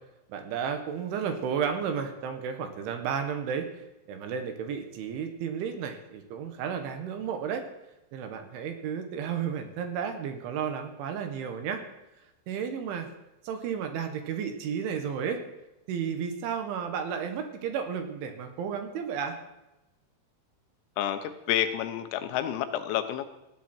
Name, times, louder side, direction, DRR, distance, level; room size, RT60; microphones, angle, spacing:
voice 1, 0.3-7.7 8.1-11.8 12.5-13.1 13.4-15.4 15.9-19.4, right 7 dB, 70° right, 6 dB, 3.8 m, -32 dB
voice 2, 21.0-23.3, left 11 dB, 80° left, 9 dB, 3.8 m, -29 dB
19.5 x 15.5 x 4.6 m, 0.93 s
omnidirectional pair, 6.0 m